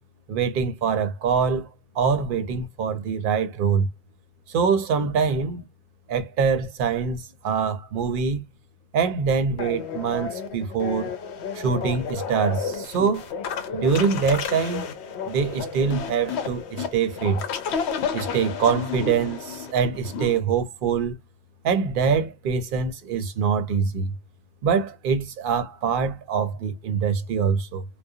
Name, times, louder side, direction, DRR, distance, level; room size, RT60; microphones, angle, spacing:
voice 1, 0.3-1.7 1.9-3.9 4.5-5.6 6.1-8.4 8.9-11.2 11.5-13.3 13.7-14.9 15.3-17.4 18.1-21.2 21.6-24.1 24.6-27.8, right 6 dB, 60° right, 0.6 m, -24 dB
sound 1, 9.6-20.4, left 6 dB, 80° left, 0.9 m, -31 dB
2.3 x 2.1 x 2.6 m
omnidirectional pair, 1.1 m